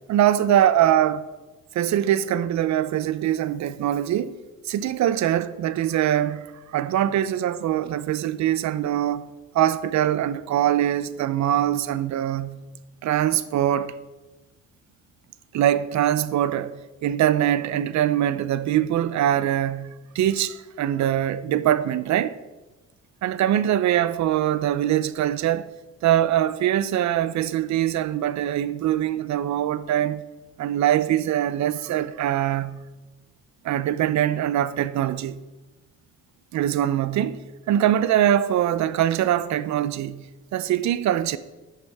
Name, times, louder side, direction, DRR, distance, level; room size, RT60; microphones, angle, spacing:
voice 1, 0.1-1.3 1.7-4.4 4.6-9.3 9.5-12.6 13.0-14.0 15.5-22.4 23.2-30.2 30.6-32.8 33.6-35.4 36.5-37.4 37.7-41.4, right 11 dB, 65° right, 0.6 m, -23 dB
10.5 x 8.4 x 3.5 m
cardioid pair, 90°, 30 cm